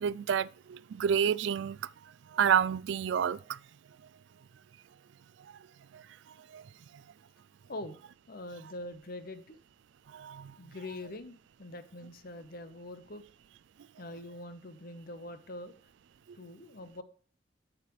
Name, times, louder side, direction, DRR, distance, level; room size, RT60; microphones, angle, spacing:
voice 1, 0.0-1.8 2.3-3.4 5.9-6.0 6.5-6.6 10.1-10.5, right 8 dB, 70° right, 0.3 m, -29 dB
voice 2, 8.3-9.6 10.6-13.2 14.0-15.7 16.3-17.0, left 1 dB, 55° left, 1.0 m, -44 dB
9.2 x 7.5 x 3.2 m
head